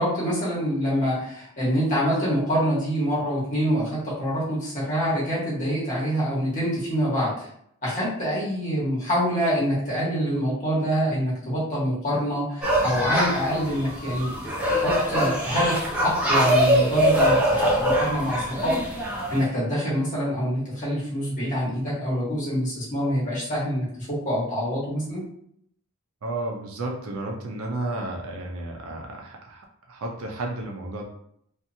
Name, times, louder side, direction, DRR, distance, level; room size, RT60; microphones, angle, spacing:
voice 1, 0.0-7.5 7.8-14.3 14.7-18.8 19.3-25.2, equal, 35° left, -6 dB, 1.2 m, -25 dB
sound 1, 12.6-19.5, equal, 5° right, 0.6 m, -23 dB
voice 2, 26.2-31.0, right 2 dB, 70° right, 0 dB, 0.5 m, -32 dB
2.8 x 2.5 x 2.6 m, 0.69 s
head